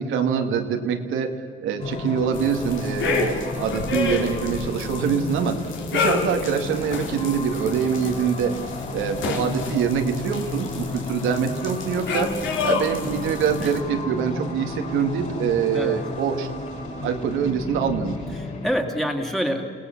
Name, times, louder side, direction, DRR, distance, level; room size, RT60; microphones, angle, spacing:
voice 1, 0.0-5.6 5.9-8.6 8.9-12.3 12.6-16.5 17.0-18.4, right 7 dB, 85° right, 4 dB, 2.1 m, -24 dB
sound 1, 1.8-18.7, left 2 dB, 35° left, 6.2 m, -33 dB
sound 2, 2.3-13.8, left 4 dB, 75° left, 3.1 m, -30 dB
voice 2, 18.4-19.7, equal, ahead, 2 dB, 2.8 m, -26 dB
29.0 x 18.0 x 7.2 m, 2.1 s
cardioid pair, 110°, 20 cm